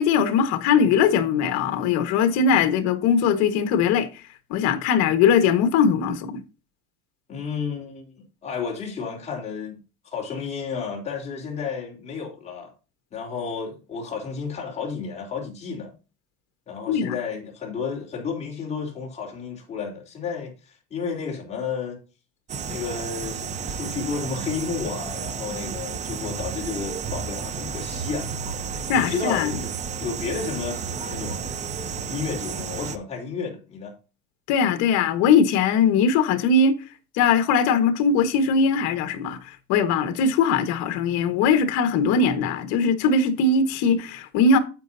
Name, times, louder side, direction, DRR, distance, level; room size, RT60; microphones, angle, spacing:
voice 1, 0.0-4.1 4.5-6.4 16.9-17.1 28.9-29.5 34.5-36.7 37.1-44.6, left 5 dB, 60° left, 1.6 m, -20 dB
voice 2, 7.3-9.8 10.1-12.7 13.1-15.9 16.7-22.0 22.7-28.3 28.9-29.6 30.0-31.6 32.1-33.9, left 5 dB, 20° left, 3.7 m, -32 dB
sound 1, 22.5-33.0, right 6 dB, 20° right, 0.7 m, -32 dB
10.0 x 7.8 x 2.7 m
cardioid pair, 165°, 31 cm